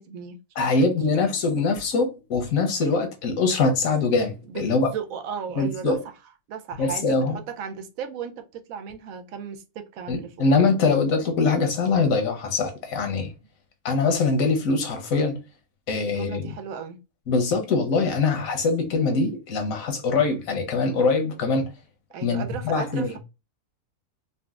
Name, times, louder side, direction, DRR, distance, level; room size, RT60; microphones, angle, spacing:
voice 1, 0.0-0.9 4.5-4.6 4.9-6.0 6.5-7.1 7.6-10.3 16.0-17.0 22.1-23.2, right 7 dB, 80° right, 1.0 m, -35 dB
voice 2, 0.6-4.9 5.6-6.0 6.8-7.4 10.1-13.3 13.8-15.4 15.9-16.5 17.3-21.7 22.2-23.2, left 4 dB, 80° left, 1.2 m, -23 dB
3.9 x 2.1 x 2.3 m
omnidirectional pair, 1.4 m